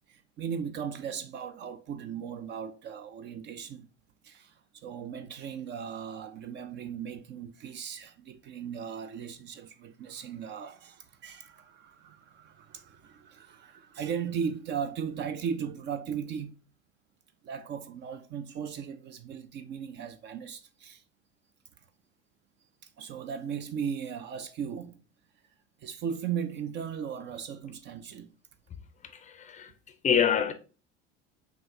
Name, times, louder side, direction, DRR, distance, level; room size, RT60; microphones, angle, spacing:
voice 1, 0.1-3.9 4.2-16.6 17.4-21.0 22.8-25.0 25.8-28.3, right 7 dB, 35° right, 0.4 m, -37 dB
voice 2, 29.0-29.7 30.0-30.5, left 8 dB, 25° left, 0.5 m, -26 dB
6.0 x 2.5 x 2.6 m
figure-of-eight pair, 65°, 33 cm